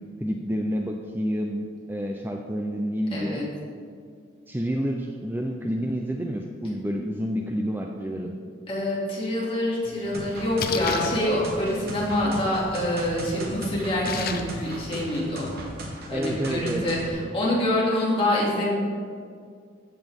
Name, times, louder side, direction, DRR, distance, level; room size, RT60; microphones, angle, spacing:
voice 1, 0.2-3.4 4.5-8.3 16.1-16.9, equal, 10° right, 2 dB, 0.5 m, -29 dB
voice 2, 3.1-3.5 8.7-15.5 16.1-18.7, left 1 dB, 30° left, -6 dB, 2.5 m, -26 dB
Splash splatter, 9.8-14.9, left 5 dB, 50° left, 0.6 m, -36 dB
sound 1, 10.1-17.1, right 1 dB, 55° right, 1.5 m, -37 dB
15.0 x 5.9 x 3.6 m, 2.2 s
head